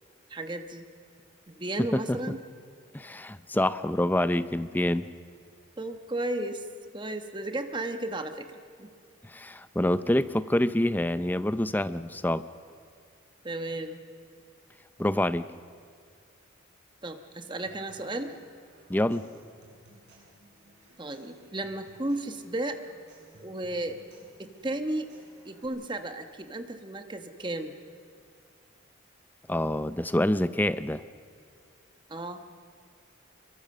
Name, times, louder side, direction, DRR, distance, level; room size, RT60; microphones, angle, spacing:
voice 1, 0.3-0.9 1.5-2.4 5.8-6.7 6.9-8.9 13.4-14.0 17.0-18.3 21.0-22.8 23.4-24.0 24.4-25.1 25.4-27.7 32.1-32.4, right 1 dB, 20° right, 7 dB, 1.2 m, -34 dB
voice 2, 2.9-5.1 9.2-12.4 15.0-15.4 18.9-19.2 29.5-31.0, left 1 dB, 10° left, 13 dB, 0.5 m, -26 dB
Human voice / Acoustic guitar / Percussion, 17.7-25.6, right 1 dB, 55° right, 6.7 m, -58 dB
25.0 x 22.5 x 6.7 m, 2.2 s
head